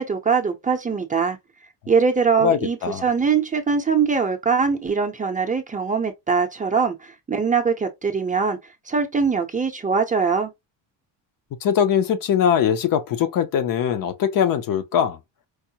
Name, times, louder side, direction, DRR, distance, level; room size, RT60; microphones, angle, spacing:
voice 1, 0.0-1.4 1.9-8.6 8.9-10.5, right 5 dB, 20° right, 0.6 m, -22 dB
voice 2, 2.4-3.0 11.6-15.2, left 8 dB, 50° left, 0.6 m, -21 dB
4.7 x 2.0 x 2.8 m
cardioid pair, 115°, 43 cm